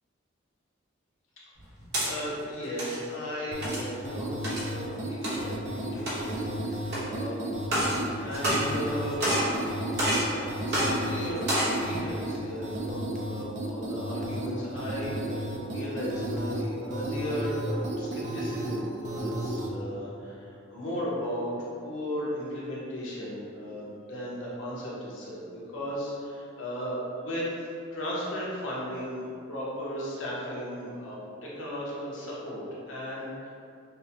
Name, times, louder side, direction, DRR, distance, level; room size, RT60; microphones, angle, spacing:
sound 1, 1.6-2.1 2.6-3.0 3.6-3.9 4.4-4.7 5.2-5.4 6.0-6.4 6.9-7.0 7.6-8.0 8.3-8.9 9.2-9.5 10.0-10.3 10.7-10.9 11.4-11.8, right 1 dB, 55° right, 1.2 m, -28 dB
voice 1, 2.0-7.5 7.8-10.0 10.3-21.6 21.8-27.5 27.9-33.5, equal, 85° left, -6 dB, 1.0 m, -36 dB
sound 2, 3.5-19.7, right 1 dB, 40° right, 0.4 m, -33 dB
5.5 x 2.2 x 2.8 m, 2.5 s
head